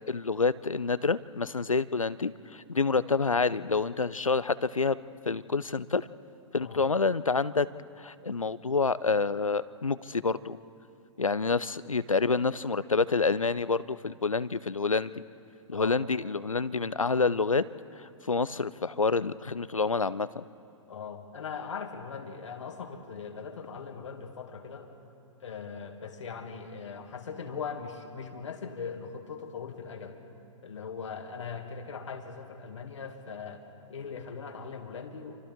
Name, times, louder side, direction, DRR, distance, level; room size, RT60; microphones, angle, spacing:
voice 1, 0.1-5.0 5.3-6.1 6.5-7.7 8.0-10.6 11.2-15.2 15.7-17.6 18.3-20.4, left 4 dB, 90° left, 17 dB, 0.5 m, -28 dB
voice 2, 15.7-16.1 20.9-25.0 25.4-30.2 30.6-35.4, left 5 dB, 65° left, 4 dB, 2.2 m, -40 dB
28.5 x 25.0 x 3.7 m, 2.6 s
figure-of-eight pair, 110°, 17 cm